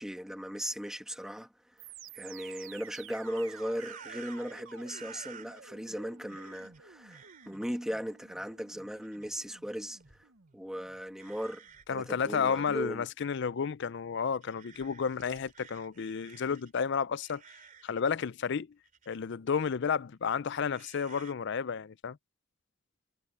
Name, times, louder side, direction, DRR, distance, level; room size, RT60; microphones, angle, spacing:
voice 1, 0.0-1.5 2.1-10.0 10.5-11.6 11.9-13.1, equal, 5° right, 1.8 m, -37 dB
sound 1, 1.8-11.8, right 7 dB, 70° right, 1.1 m, -53 dB
sound 2, 2.8-5.7 6.3-6.8 7.1-7.8 9.0-9.5 10.0-10.2 11.2-12.9 13.3-13.4 14.3-16.8 17.2-18.1 18.9-19.2 20.7-21.3, right 7 dB, 40° right, 3.3 m, -53 dB
voice 2, 11.9-17.4 17.8-18.7 19.1-22.2, left 6 dB, 60° left, 0.5 m, -32 dB
head